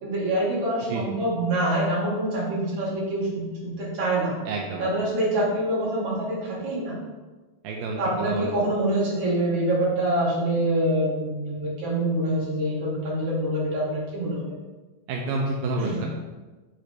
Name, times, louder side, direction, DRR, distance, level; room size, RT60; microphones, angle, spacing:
voice 1, 0.0-4.3 4.8-7.0 8.0-14.5 15.8-16.0, right 1 dB, 55° right, -7 dB, 3.4 m, -25 dB
voice 2, 4.4-4.9 7.6-8.5 15.1-16.1, right 3 dB, 85° right, -1 dB, 2.4 m, -29 dB
10.5 x 3.9 x 3.3 m, 1.2 s
omnidirectional pair, 4.1 m